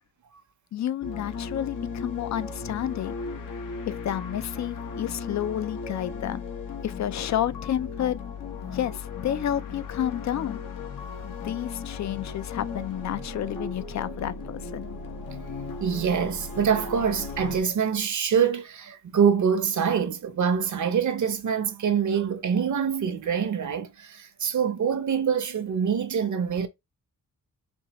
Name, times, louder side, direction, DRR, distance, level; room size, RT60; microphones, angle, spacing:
voice 1, 0.7-3.1 3.8-6.4 6.8-8.2 8.7-10.6 11.2-14.9, left 11 dB, 55° left, 0.4 m, -30 dB
sound 1, 1.0-17.6, left 5 dB, 70° left, 0.9 m, -36 dB
voice 2, 15.8-26.7, right 7 dB, 60° right, 0.8 m, -25 dB
4.5 x 2.8 x 2.9 m
cardioid pair, 90°, 34 cm